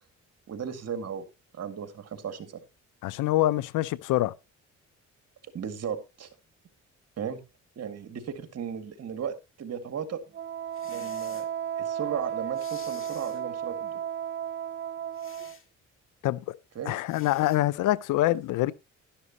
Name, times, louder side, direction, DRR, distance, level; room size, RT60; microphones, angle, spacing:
voice 1, 0.5-1.3 1.5-2.6 5.5-6.3 7.2-7.4 7.8-10.2 10.8-11.5 11.8-14.0 16.7-17.0, right 7 dB, 55° right, 2.1 m, -36 dB
voice 2, 3.0-4.3 16.2-16.4 16.9-18.7, left 15 dB, 85° left, 0.6 m, -25 dB
Wind instrument woodwind instrument, 10.3-15.6, right 9 dB, 40° right, 0.5 m, -34 dB
sound 1, 10.7-11.5 12.5-13.4 15.1-15.7 17.1-17.6, left 6 dB, 45° left, 2.1 m, -50 dB
12.0 x 11.5 x 2.9 m
cardioid pair, 90°, 30 cm